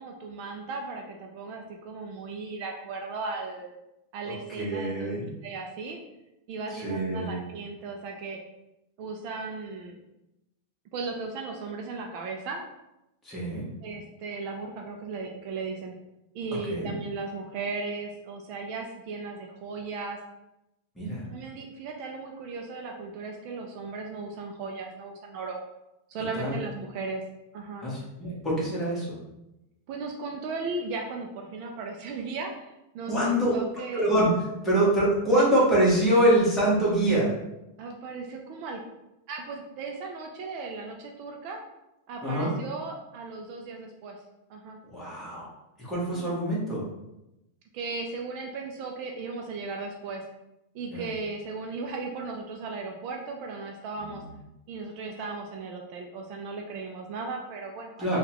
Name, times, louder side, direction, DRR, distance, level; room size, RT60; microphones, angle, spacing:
voice 1, 0.0-3.8 4.1-5.2 5.4-6.0 6.5-8.4 9.0-10.0 10.9-12.6 13.8-15.9 16.3-20.2 21.3-25.6 26.1-27.2 27.5-27.9 29.9-34.1 37.8-38.8 39.3-41.6 42.1-44.2 44.5-44.8 46.1-46.3 47.7-50.2 50.7-54.2 54.7-58.2, right 4 dB, 45° right, 2 dB, 0.4 m, -36 dB
voice 2, 4.2-5.3 6.7-7.4 13.2-13.7 16.7-16.9 21.0-21.2 26.3-26.6 27.8-29.2 33.1-33.6 33.9-37.3 42.2-42.5 44.9-45.5 45.8-46.8 50.9-51.1 54.0-54.2 58.0-58.2, right 1 dB, 10° left, -7 dB, 1.2 m, -25 dB
3.6 x 2.3 x 2.9 m, 0.92 s
supercardioid pair, 150°, 0 cm